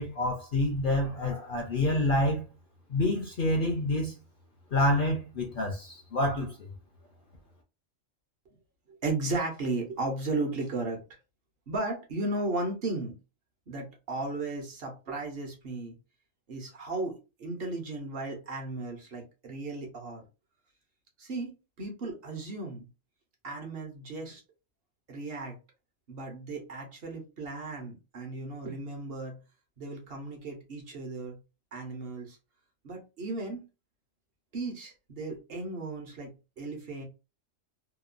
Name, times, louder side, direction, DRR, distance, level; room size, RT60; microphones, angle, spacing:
voice 1, 0.0-2.5 2.9-4.2 4.7-6.6, left 1 dB, 60° left, 0.6 m, -27 dB
voice 2, 8.9-11.0 11.7-13.1 13.7-15.9 16.5-17.1 17.4-20.2 21.2-21.5 21.8-22.9 23.4-24.4 25.1-25.6 26.1-29.4 29.8-31.4 31.7-32.4 32.8-33.6 34.5-37.0, right 2 dB, 55° right, 0.9 m, -35 dB
2.9 x 2.2 x 2.4 m
omnidirectional pair, 1.3 m